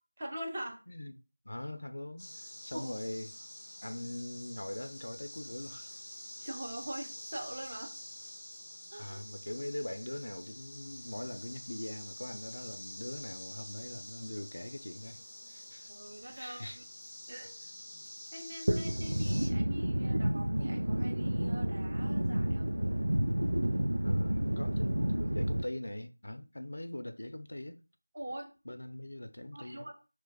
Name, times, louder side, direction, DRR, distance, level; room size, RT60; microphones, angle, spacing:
voice 1, 0.2-0.8 2.7-2.9 6.4-7.9 8.9-9.2 15.9-16.8 17.3-17.5 18.3-22.7 28.1-28.5 29.5-29.9, right 1 dB, 30° right, 0.8 m, -43 dB
voice 2, 1.4-3.3 3.8-5.9 9.0-15.2 15.5-15.9 16.3-16.8 24.0-27.8 28.7-29.8, left 1 dB, 70° left, 0.4 m, -42 dB
sound 1, 2.2-19.5, left 1 dB, 10° left, 0.6 m, -48 dB
sound 2, 18.7-25.6, right 1 dB, 75° right, 0.5 m, -30 dB
3.0 x 2.2 x 3.5 m
figure-of-eight pair, 175°, 0 cm